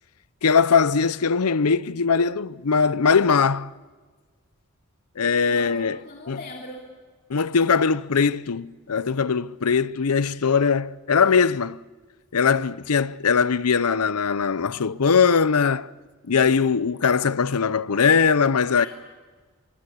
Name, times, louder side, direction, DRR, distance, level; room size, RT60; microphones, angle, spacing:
voice 1, 0.4-3.7 5.2-6.0 6.3-6.4 7.3-11.8 12.3-15.9 16.3-18.9, left 5 dB, 90° left, 0.7 m, -21 dB
voice 2, 5.5-6.8 18.8-18.9, left 2 dB, 45° left, 3.1 m, -39 dB
26.0 x 24.0 x 8.4 m
head